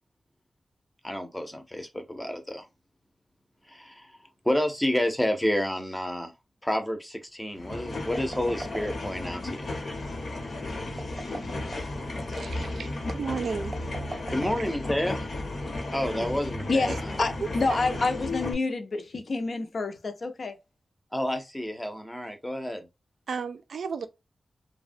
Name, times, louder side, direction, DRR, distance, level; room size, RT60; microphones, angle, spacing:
voice 1, 1.0-2.7 3.7-4.2 4.4-6.3 6.6-9.7 14.3-15.2 15.9-17.1 21.1-22.9, left 1 dB, 10° left, 0.6 m, -30 dB
sound 1, 7.6-18.5, left 2 dB, 75° left, 0.9 m, -34 dB
sound 2, 7.9-9.3 10.9-12.0 13.6-15.2, right 2 dB, 35° right, 0.6 m, -41 dB
voice 2, 12.3-13.7 16.2-16.3 16.9-17.0 17.7-18.0 23.3-24.1, right 5 dB, 85° right, 0.4 m, -34 dB
voice 3, 17.2-20.6, left 3 dB, 55° left, 0.5 m, -28 dB
3.2 x 2.1 x 2.5 m
wide cardioid pair, 130°, 0 cm